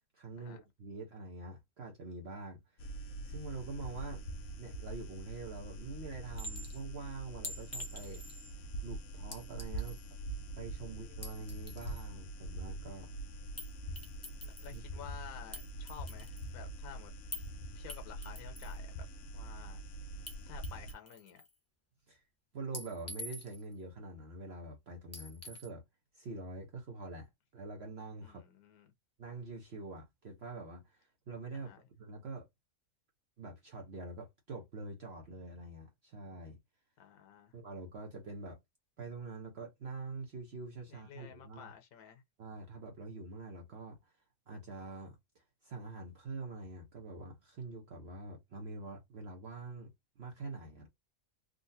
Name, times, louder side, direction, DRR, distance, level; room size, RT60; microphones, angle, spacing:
voice 1, 0.1-2.9 3.2-4.2 4.6-8.2 8.8-10.0 10.5-13.1 14.7-15.1 22.1-22.2 22.5-25.8 26.1-28.4 29.2-32.5 33.4-36.6 37.5-38.6 39.0-41.7 42.4-44.1 44.5-50.9, right 3 dB, 50° right, 1.0 m, -45 dB
sound 1, 2.8-20.9, right 1 dB, 65° left, 0.9 m, -44 dB
Chink clink, 6.4-6.8 7.4-8.5 9.3-10.1 11.1-12.1 13.6-13.7 14.0-14.8 15.5-16.5 17.3-17.5 17.9-18.8 20.3-20.4 20.6-21.5 22.7-23.7 25.1-25.7, left 1 dB, 15° left, 0.6 m, -46 dB
voice 2, 14.4-17.1 17.7-19.1 19.3-19.8 20.5-21.4 28.2-28.9 31.5-31.8 37.0-37.5 40.9-42.2, left 8 dB, 80° left, 1.2 m, -52 dB
3.7 x 2.4 x 2.6 m
omnidirectional pair, 1.5 m